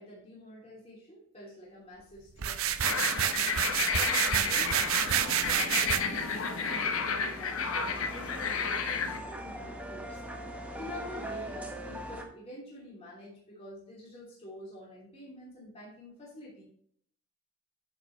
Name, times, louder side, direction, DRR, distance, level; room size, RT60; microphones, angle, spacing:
voice 1, 0.0-10.2 10.8-16.6, equal, 30° left, -6 dB, 2.9 m, -48 dB
sound 1, 2.4-6.0, right 9 dB, 75° right, 0.7 m, -28 dB
sound 2, 2.8-9.2, left 5 dB, 70° left, 0.9 m, -32 dB
sound 3, 3.7-12.2, right 1 dB, 5° right, 1.0 m, -42 dB
9.9 x 7.0 x 3.1 m, 0.64 s
head